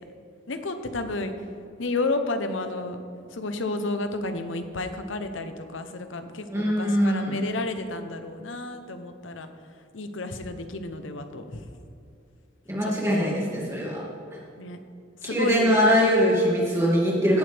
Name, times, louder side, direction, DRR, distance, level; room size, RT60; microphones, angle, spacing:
voice 1, 0.5-1.3 1.8-3.0 3.3-9.5 9.9-11.6 12.8-13.2 14.6-14.8 15.2-15.8, left 2 dB, 75° left, 8 dB, 0.9 m, -31 dB
voice 2, 6.5-7.3 12.7-14.0 15.2-17.4, equal, 15° right, -5 dB, 2.4 m, -22 dB
17.0 x 7.7 x 3.5 m, 2.6 s
head